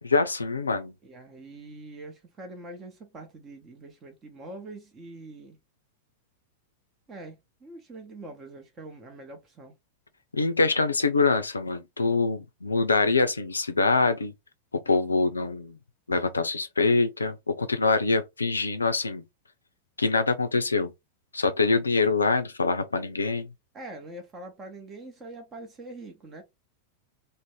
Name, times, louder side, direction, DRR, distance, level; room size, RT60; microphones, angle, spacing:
voice 1, 0.0-0.9 10.3-14.3 14.7-15.8 16.1-19.2 20.0-20.9 21.3-23.5, left 3 dB, 75° left, 0.4 m, -24 dB
voice 2, 1.0-5.6 7.1-9.7 23.7-26.4, right 2 dB, 25° right, 0.8 m, -44 dB
2.5 x 2.1 x 3.2 m
figure-of-eight pair, 90°, 0 cm